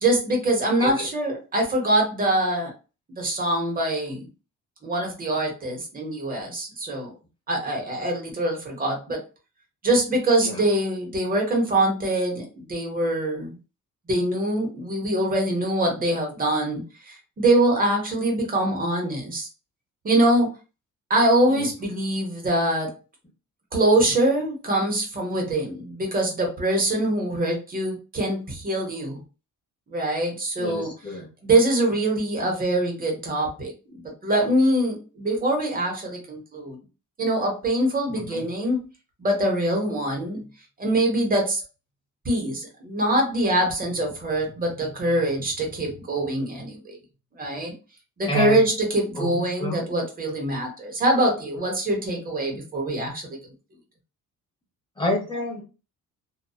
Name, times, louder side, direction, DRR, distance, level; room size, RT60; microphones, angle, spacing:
voice 1, 0.0-2.7 3.2-4.3 4.8-7.1 7.5-9.2 9.8-13.5 14.1-19.5 20.0-20.5 21.1-22.9 23.7-29.2 29.9-30.9 31.4-36.8 37.2-38.9 39.2-40.4 40.8-41.6 42.2-47.0 47.4-47.7 48.2-53.4, right 1 dB, 25° right, 1 dB, 0.9 m, -24 dB
voice 2, 30.6-31.3 38.1-38.5 48.3-48.6 49.2-49.8 55.0-55.6, equal, 15° left, -2 dB, 1.0 m, -29 dB
2.6 x 2.3 x 2.3 m, 0.32 s
cardioid pair, 150°, 32 cm